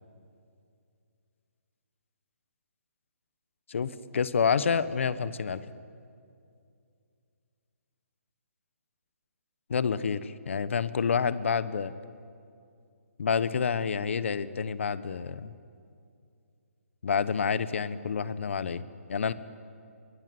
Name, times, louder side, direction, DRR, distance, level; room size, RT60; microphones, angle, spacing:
voice 1, 3.7-5.6 9.7-11.9 13.2-15.5 17.0-18.8 19.1-19.3, left 6 dB, 55° left, 15 dB, 1.2 m, -28 dB
29.0 x 23.5 x 7.9 m, 2.4 s
hypercardioid pair, 165°, 8 cm